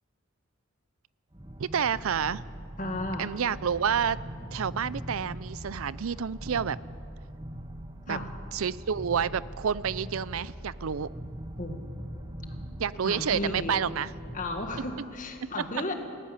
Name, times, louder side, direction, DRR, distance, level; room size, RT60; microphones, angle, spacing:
sound 1, 1.3-15.0, equal, 20° right, 1.0 m, -41 dB
voice 1, 1.6-2.4 3.2-4.2 4.5-6.8 8.1-8.2 8.5-11.1 12.8-14.1, right 7 dB, 75° right, 18 dB, 0.5 m, -29 dB
voice 2, 2.8-3.3 8.1-8.3 11.6-11.8 13.0-13.8 14.3-15.9, left 2 dB, 35° left, 4 dB, 1.8 m, -34 dB
19.0 x 14.0 x 9.7 m, 2.3 s
head